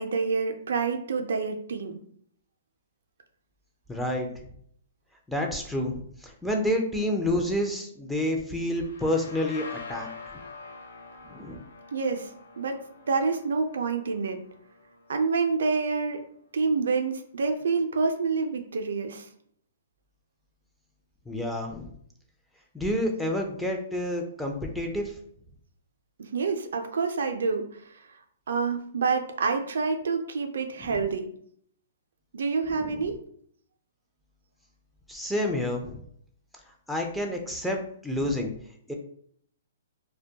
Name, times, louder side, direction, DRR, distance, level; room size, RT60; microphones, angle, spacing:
voice 1, 0.0-2.0 11.9-12.3 12.6-12.8 13.1-14.4 15.1-16.2 16.5-19.3 26.2-28.0 28.5-31.3 32.3-33.1, right 4 dB, 75° right, 5 dB, 0.4 m, -27 dB
voice 2, 3.9-4.3 5.3-10.1 11.3-11.6 21.3-21.9 22.7-25.1 30.8-31.0 32.7-33.1 35.1-36.0 36.9-38.5 38.9-39.0, left 1 dB, ahead, 0 dB, 0.4 m, -29 dB
sound 1, 8.6-16.2, left 4 dB, 85° left, 0.5 m, -46 dB
2.1 x 2.1 x 2.7 m, 0.64 s
hypercardioid pair, 140°, 0 cm